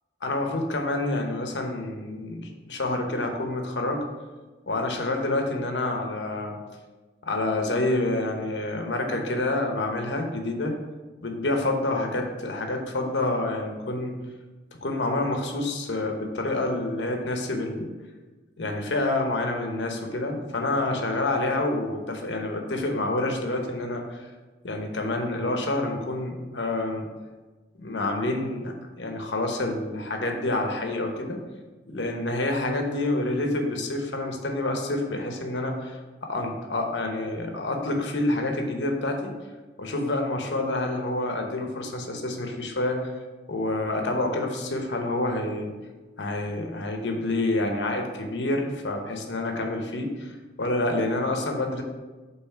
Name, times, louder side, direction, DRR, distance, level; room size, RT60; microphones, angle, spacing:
voice 1, 0.2-4.0 4.7-6.6 7.2-10.8 11.2-14.2 14.8-17.9 18.6-24.3 24.6-27.1 27.8-31.4 31.9-39.3 39.8-43.1 43.5-45.7 46.2-51.8, left 2 dB, 85° left, 3 dB, 1.0 m, -28 dB
5.7 x 4.0 x 5.7 m, 1.3 s
head